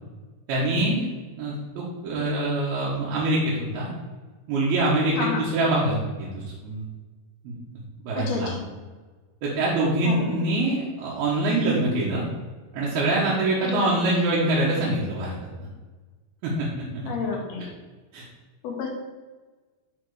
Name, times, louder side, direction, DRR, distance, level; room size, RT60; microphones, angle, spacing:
voice 1, 0.5-1.1 1.4-3.9 4.5-6.8 7.4-7.5 8.0-8.5 9.4-12.2 12.7-15.7 16.4-16.7 16.9-17.1 18.1-18.2, right 2 dB, 75° right, -6 dB, 3.4 m, -24 dB
voice 2, 8.2-8.7 10.0-10.4 13.6-14.1 17.1-17.7 18.6-18.9, left 5 dB, 75° left, 0 dB, 3.4 m, -30 dB
9.1 x 5.0 x 4.9 m, 1.3 s
omnidirectional pair, 4.5 m